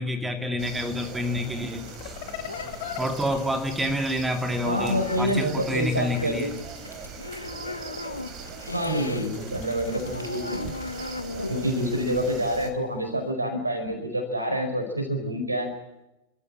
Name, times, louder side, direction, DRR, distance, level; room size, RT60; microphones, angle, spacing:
voice 1, 0.0-2.1 3.0-6.5, left 1 dB, 10° right, 6 dB, 2.5 m, -28 dB
sound 1, 0.6-12.7, right 5 dB, 35° right, 3.4 m, -41 dB
sound 2, 1.2-9.3 9.6-13.3, left 3 dB, 80° left, 1.1 m, -38 dB
sound 3, 1.9-4.6 5.9-7.4 8.0-12.2, left 13 dB, 45° left, 2.0 m, -43 dB
voice 2, 4.6-6.5 8.6-10.7 11.5-15.7, equal, 80° right, 7 dB, 4.9 m, -27 dB
29.5 x 13.5 x 8.8 m, 0.97 s
figure-of-eight pair, 90°, 0 cm